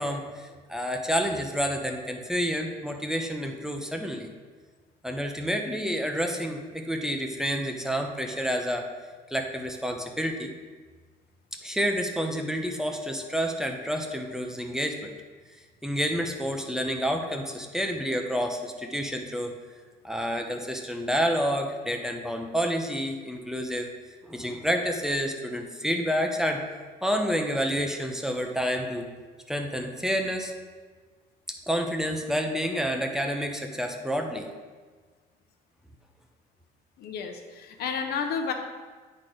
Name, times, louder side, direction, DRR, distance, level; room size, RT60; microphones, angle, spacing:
voice 1, 0.0-4.3 5.0-8.8 9.3-10.5 11.6-15.1 15.8-19.5 20.0-23.9 24.2-26.6 27.0-29.0 29.5-30.5 31.7-34.5, equal, 5° right, 3 dB, 0.8 m, -29 dB
voice 2, 37.0-38.5, left 6 dB, 70° left, 5 dB, 0.9 m, -31 dB
9.5 x 4.3 x 4.9 m, 1.4 s
cardioid pair, 110°, 17 cm